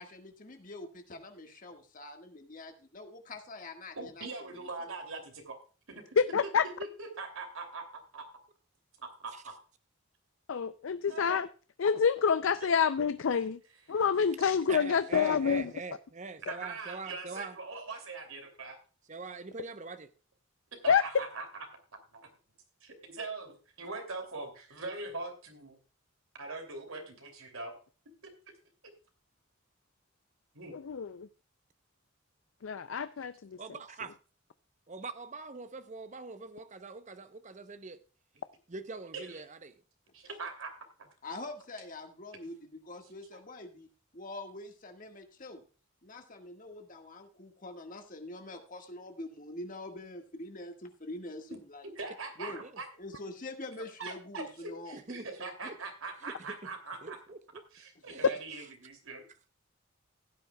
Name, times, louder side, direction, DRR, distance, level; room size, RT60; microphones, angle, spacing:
voice 1, 0.0-4.7 41.2-43.9 44.1-45.6 46.0-51.9 52.4-52.6 53.0-55.0 58.1-58.2, left 2 dB, 40° left, 1.7 m, -45 dB
voice 2, 4.0-5.6 5.9-6.2 6.8-8.3 9.0-9.6 11.1-11.4 13.9-14.0 16.5-18.8 20.8-21.5 22.1-22.3 22.8-25.8 26.3-27.7 28.2-28.3 30.5-30.8 33.2-33.3 39.1-39.4 40.1-40.7 51.5-51.6 52.0-52.9 54.0-57.2 57.7-59.2, right 3 dB, 80° right, 2.8 m, -42 dB
voice 3, 6.2-6.6 10.5-11.5 11.8-13.6 13.9-15.7 20.9-21.0 30.7-31.3 32.6-33.6, left 6 dB, 70° left, 0.5 m, -27 dB
voice 4, 14.7-17.6 19.1-20.1 33.6-34.1 34.9-38.0 38.7-39.8 52.5-52.7 54.9-55.3 55.6-55.8 56.2-56.7 57.0-57.6 58.1-58.3, right 4 dB, 35° right, 0.8 m, -43 dB
16.0 x 9.7 x 2.3 m
head